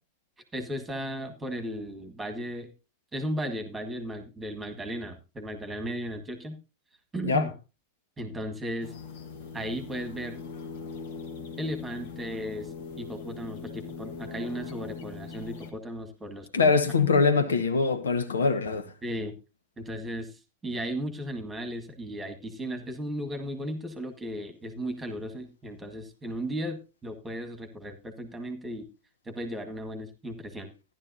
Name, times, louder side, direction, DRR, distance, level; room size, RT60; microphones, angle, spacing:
voice 1, 0.5-2.7 3.1-6.6 7.1-7.5 8.2-8.9 9.5-10.5 11.6-16.7 19.0-19.4 19.8-28.9 29.3-30.7, equal, 10° right, 1.9 m, -35 dB
sound 1, 8.8-15.7, left 5 dB, 55° left, 1.6 m, -41 dB
voice 2, 16.5-18.9, left 4 dB, 70° left, 1.1 m, -23 dB
14.0 x 11.0 x 2.7 m
figure-of-eight pair, 90°, 0 cm